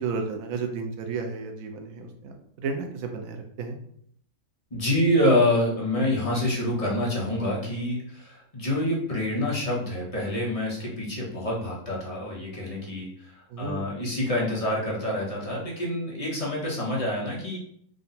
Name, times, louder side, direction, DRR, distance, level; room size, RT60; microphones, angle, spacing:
voice 1, 0.0-3.8 13.5-13.9, right 4 dB, 70° right, 4 dB, 1.1 m, -33 dB
voice 2, 4.7-17.6, left 1 dB, 30° left, -4 dB, 1.0 m, -27 dB
3.8 x 2.3 x 4.1 m, 0.66 s
omnidirectional pair, 1.5 m